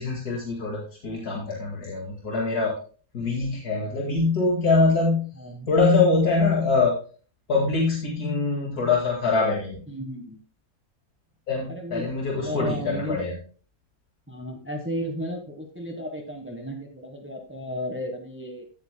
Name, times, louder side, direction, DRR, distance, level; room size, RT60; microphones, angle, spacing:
voice 1, 0.0-2.8 3.1-5.3 5.7-6.9 7.5-9.9 11.5-13.4, left 3 dB, 90° left, -2 dB, 2.6 m, -23 dB
voice 2, 5.4-5.7 9.9-10.4 11.7-12.1 12.4-13.2 14.3-18.6, equal, 10° right, 3 dB, 1.2 m, -34 dB
15.0 x 8.1 x 2.2 m, 0.38 s
omnidirectional pair, 1.6 m